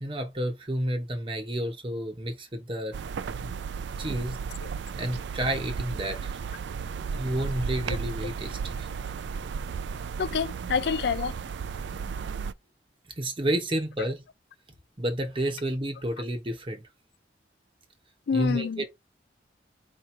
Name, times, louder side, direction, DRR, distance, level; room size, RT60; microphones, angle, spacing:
voice 1, 0.0-3.0 3.3-3.5 4.0-4.4 4.9-6.4 7.1-8.9 13.2-14.2 15.0-16.8 18.3-18.9, right 1 dB, 30° right, 0.9 m, -30 dB
sound 1, 2.9-12.5, right 6 dB, 70° right, 0.4 m, -34 dB
voice 2, 10.2-11.4 14.0-14.1 18.3-18.9, left 6 dB, 60° left, 0.3 m, -28 dB
4.8 x 3.0 x 3.2 m
head